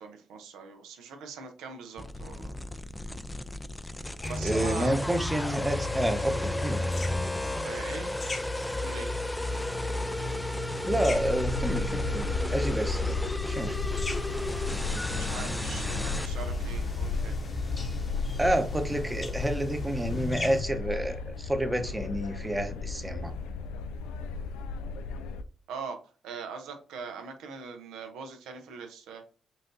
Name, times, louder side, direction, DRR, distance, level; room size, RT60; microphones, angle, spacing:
voice 1, 0.0-2.5 4.3-5.0 7.6-8.1 8.8-9.1 15.1-17.4 25.7-26.0 26.2-29.3, right 5 dB, 85° right, 5 dB, 0.8 m, -41 dB
sound 1, 2.0-16.3, left 1 dB, 10° left, 0.4 m, -35 dB
sound 2, 4.2-20.6, left 1 dB, 30° left, 1.0 m, -35 dB
voice 2, 4.4-7.1 10.8-13.1 13.4-13.8 18.4-23.3, right 1 dB, 15° right, 7 dB, 0.9 m, -29 dB
sound 3, 11.1-25.4, left 4 dB, 90° left, 0.3 m, -34 dB
5.7 x 2.6 x 2.7 m, 0.37 s
supercardioid pair, 55°, 0 cm